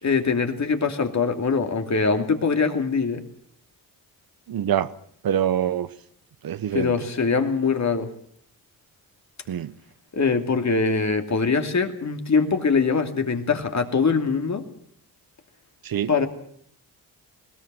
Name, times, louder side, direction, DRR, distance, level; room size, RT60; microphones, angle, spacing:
voice 1, 0.0-3.2 6.7-8.1 10.1-14.6 16.1-16.3, left 5 dB, 45° left, 2.8 m, -23 dB
voice 2, 4.5-4.9 5.2-5.9 6.4-6.9 9.5-9.7 15.8-16.1, right 10 dB, 65° right, 1.1 m, -24 dB
20.5 x 18.0 x 7.7 m
cardioid pair, 75°, 39 cm